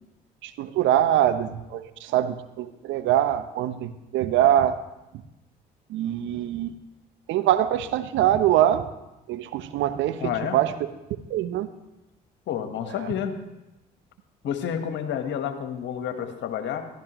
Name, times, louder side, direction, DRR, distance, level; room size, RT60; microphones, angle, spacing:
voice 1, 0.4-4.8 5.1-5.2 5.9-6.7 7.3-8.9 9.3-10.7 11.3-11.7 12.9-13.1, right 12 dB, 65° right, 11 dB, 0.8 m, -23 dB
voice 2, 10.2-10.6 12.5-13.4 14.4-16.8, left 9 dB, 65° left, 7 dB, 1.3 m, -29 dB
15.0 x 11.5 x 3.0 m, 0.97 s
hypercardioid pair, 55°, 21 cm